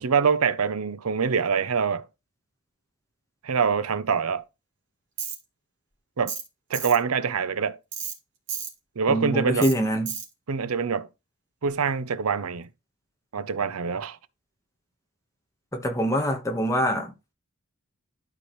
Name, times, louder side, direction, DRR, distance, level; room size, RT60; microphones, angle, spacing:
voice 1, 0.0-2.0 3.4-4.4 6.2-6.4 6.7-7.8 9.0-9.7 10.5-11.1 11.6-12.7 13.3-14.2, right 6 dB, 90° right, 0.7 m, -25 dB
Tools, 5.2-5.4 6.3-6.5 6.7-7.0 7.9-8.2 8.5-8.7 9.6-9.8 10.1-10.3, right 7 dB, 55° right, 2.8 m, -32 dB
voice 2, 9.1-10.1 15.7-17.1, equal, 15° left, 1.4 m, -24 dB
12.5 x 4.7 x 3.2 m
head